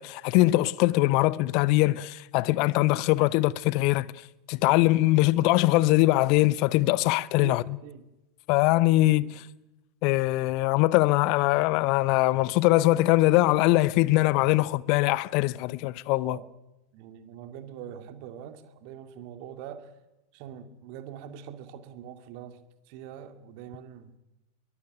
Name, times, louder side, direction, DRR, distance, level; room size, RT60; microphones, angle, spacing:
voice 1, 0.0-4.1 4.5-7.6 8.5-9.5 10.0-16.4, left 18 dB, 45° left, 0.8 m, -22 dB
voice 2, 7.4-8.0 9.2-9.4 16.2-16.5 16.9-19.9 20.3-22.6 22.9-24.1, right 9 dB, 45° right, 2.3 m, -43 dB
22.5 x 20.5 x 9.2 m
figure-of-eight pair, 90°, 0 cm